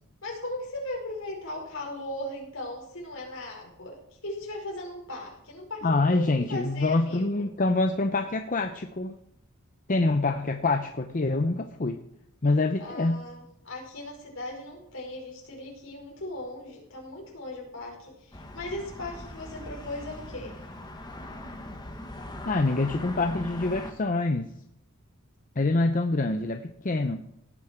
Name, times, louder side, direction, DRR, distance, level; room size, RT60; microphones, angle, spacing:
voice 1, 0.2-7.4 12.8-20.6, left 1 dB, 65° left, -1 dB, 5.3 m, -38 dB
voice 2, 5.8-9.2 9.9-12.0 12.4-13.2 22.4-24.5 25.6-27.2, left 2 dB, 40° left, 7 dB, 0.7 m, -25 dB
sound 1, 18.3-23.9, left 1 dB, 20° left, 1.6 m, -41 dB
17.5 x 9.6 x 4.5 m, 0.78 s
head